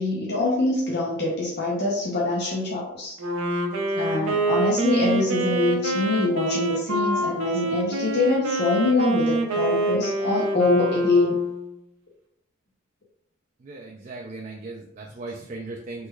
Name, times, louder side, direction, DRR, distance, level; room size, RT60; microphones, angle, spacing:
voice 1, 0.0-3.2 3.9-11.4, left 2 dB, 55° left, -4 dB, 0.6 m, -24 dB
Wind instrument woodwind instrument, 3.2-11.8, right 2 dB, 85° right, 0.6 m, -26 dB
voice 2, 13.6-16.1, right 3 dB, 35° right, -1 dB, 0.3 m, -37 dB
3.2 x 3.1 x 2.3 m, 0.73 s
head